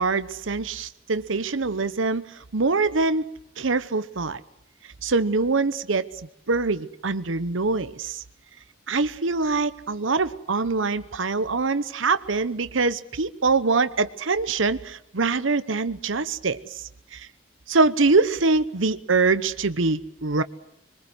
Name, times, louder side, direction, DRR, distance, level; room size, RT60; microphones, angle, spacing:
voice 1, 0.0-3.3 3.6-4.4 5.0-6.2 6.5-8.2 8.9-17.3 17.7-20.4, right 3 dB, 90° right, 1.0 m, -24 dB
26.0 x 22.5 x 7.9 m
head